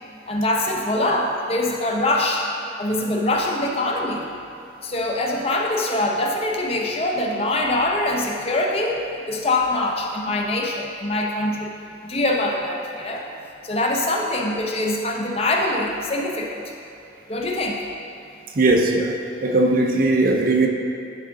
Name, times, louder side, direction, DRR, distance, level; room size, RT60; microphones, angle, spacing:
voice 1, 0.3-2.5 2.8-4.3 4.8-11.7 12.0-13.3 13.6-16.6 17.3-17.8, left 1 dB, 30° left, 0 dB, 0.6 m, -23 dB
voice 2, 18.6-20.7, right 2 dB, 45° right, 2 dB, 0.5 m, -19 dB
10.5 x 3.8 x 3.7 m, 2.7 s
head